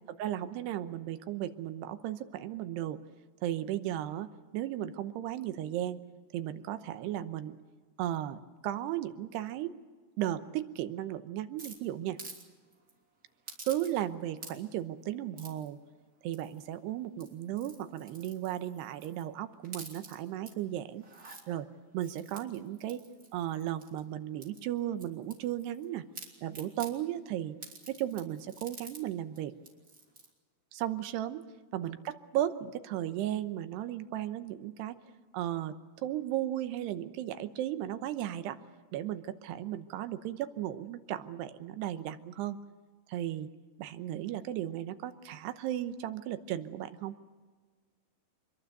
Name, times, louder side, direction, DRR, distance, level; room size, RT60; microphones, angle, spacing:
voice 1, 0.2-3.0 3.4-4.3 4.5-6.0 6.3-7.6 8.0-9.7 10.2-12.2 13.7-15.8 16.2-21.1 21.5-21.7 21.9-23.0 23.3-26.0 26.4-27.6 27.9-29.5 30.7-31.4 31.7-35.0 35.3-35.8 36.0-38.6 38.9-42.6 43.1-43.5 43.8-47.2, right 12 dB, 80° right, 10 dB, 3.0 m, -35 dB
sound 1, 11.6-12.4 12.7-12.9 13.5-14.1 14.4-14.8 15.4-15.7 16.3-16.7 17.1-19.3 19.6-20.5 21.0-21.4 22.0-24.0 24.4-25.8 26.1-26.9 27.6-29.0 29.4-29.5 29.6-30.3, right 3 dB, 25° right, 3.0 m, -49 dB
26.0 x 22.0 x 6.7 m, 1.4 s
omnidirectional pair, 4.8 m